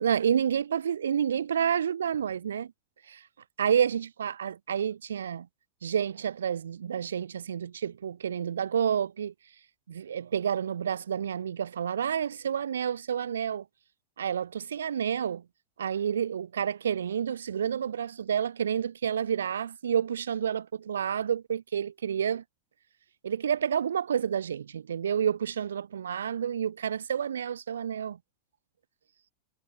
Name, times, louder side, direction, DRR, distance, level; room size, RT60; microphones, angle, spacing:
voice 1, 0.0-2.7 3.1-3.2 3.6-5.5 5.8-9.3 9.9-13.6 14.2-15.4 15.8-22.4 23.2-28.2, right 8 dB, 65° right, 0.6 m, -29 dB
figure-of-eight pair, 90°, 0 cm